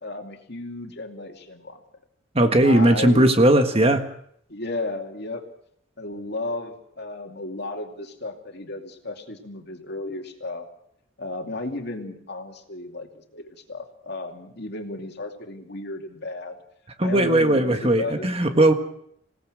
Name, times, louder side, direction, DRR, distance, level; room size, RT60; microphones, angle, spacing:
voice 1, 0.0-1.8 2.6-3.3 4.5-5.4 6.0-10.7 11.2-16.6 17.0-18.3, left 2 dB, 55° left, 4 dB, 2.6 m, -34 dB
voice 2, 2.3-4.0 17.0-18.7, right 1 dB, 30° right, 7 dB, 1.6 m, -18 dB
27.5 x 17.5 x 6.4 m, 0.69 s
head